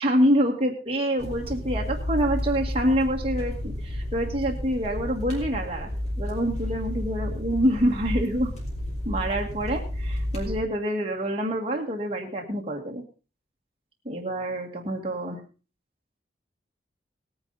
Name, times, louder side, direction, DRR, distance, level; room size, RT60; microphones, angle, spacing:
voice 1, 0.0-5.9 6.2-8.5 9.1-13.0 14.1-15.4, equal, 35° right, 0 dB, 1.7 m, -26 dB
sound 1, 1.2-10.6, left 1 dB, 40° left, 4.1 m, -31 dB
18.0 x 9.6 x 3.9 m, 0.34 s
head